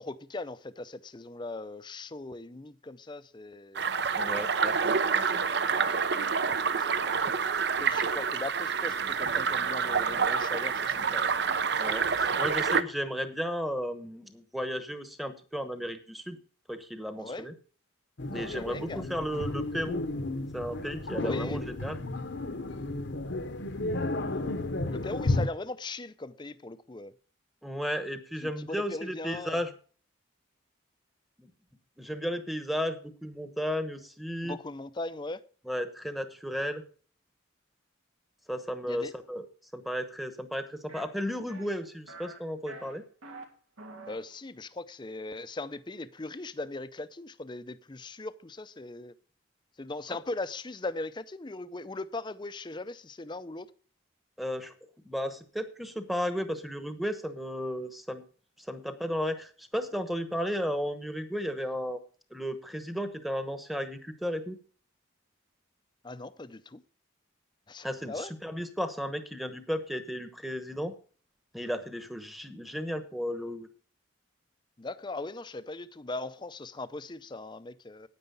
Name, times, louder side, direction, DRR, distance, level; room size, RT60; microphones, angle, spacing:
voice 1, 0.0-3.9 6.4-7.4 7.8-11.2 17.2-17.5 18.2-19.0 21.2-21.6 24.9-27.1 28.4-29.6 34.4-35.4 38.9-39.1 44.1-49.1 49.8-53.7 66.0-66.8 67.7-68.3 74.8-78.1, left 2 dB, 20° left, 0.5 m, -39 dB
sound 1, 3.8-12.8, right 5 dB, 55° right, 0.6 m, -27 dB
voice 2, 4.1-5.2 11.8-16.4 16.7-17.5 18.3-20.0 20.5-22.0 27.6-29.7 31.4-31.5 32.0-34.6 35.7-36.8 38.5-39.5 39.7-43.0 54.4-54.7 55.0-58.2 58.7-62.0 62.3-64.6 67.8-70.9 71.5-73.7, equal, ahead, 1.0 m, -34 dB
sound 2, 18.2-25.5, left 2 dB, 60° left, 0.9 m, -32 dB
sound 3, 40.9-41.0 41.5-41.8 42.1-42.4 42.7-43.4 43.8-44.2, right 2 dB, 90° right, 2.5 m, -45 dB
9.5 x 9.1 x 5.4 m
head